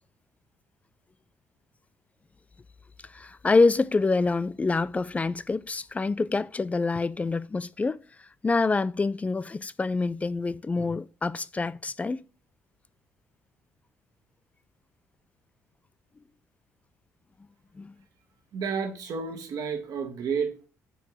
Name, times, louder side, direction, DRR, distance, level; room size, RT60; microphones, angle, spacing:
voice 1, 3.1-8.0 8.4-12.2 17.8-17.9, left 3 dB, 20° left, 0.3 m, -26 dB
voice 2, 18.5-20.7, right 6 dB, 55° right, 1.3 m, -31 dB
4.6 x 4.6 x 5.8 m
figure-of-eight pair, 50°, 8 cm